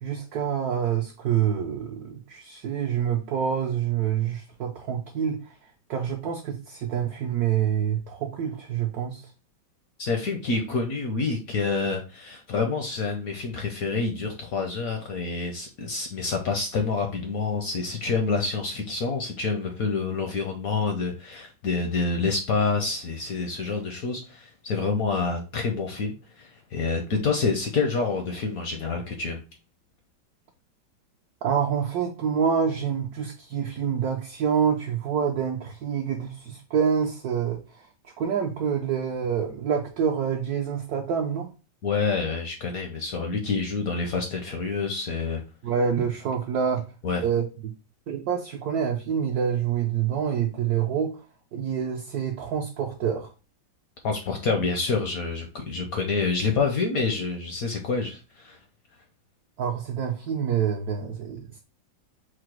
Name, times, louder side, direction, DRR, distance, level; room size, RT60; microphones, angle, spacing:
voice 1, 0.0-5.4 5.9-9.2 31.4-37.6 38.2-41.5 45.6-46.8 47.2-47.4 48.1-51.2 51.5-53.3 59.6-61.6, right 8 dB, 70° right, 0.9 m, -27 dB
voice 2, 10.0-29.4 41.8-45.4 47.0-47.2 54.0-58.6, left 4 dB, 70° left, 0.8 m, -27 dB
4.8 x 2.0 x 4.4 m
omnidirectional pair, 2.2 m